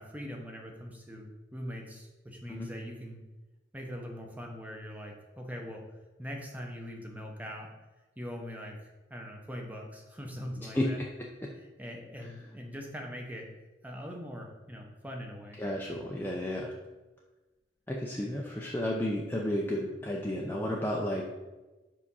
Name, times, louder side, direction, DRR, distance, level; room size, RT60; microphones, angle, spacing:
voice 1, 0.0-3.2 3.7-5.8 6.2-7.7 8.2-8.8 9.1-11.0 11.8-13.5 13.8-15.6, equal, 10° right, 1 dB, 0.8 m, -42 dB
voice 2, 10.6-10.9 15.6-16.7 17.9-21.2, left 1 dB, 10° left, -2 dB, 0.5 m, -32 dB
5.0 x 4.8 x 5.5 m, 1.2 s
head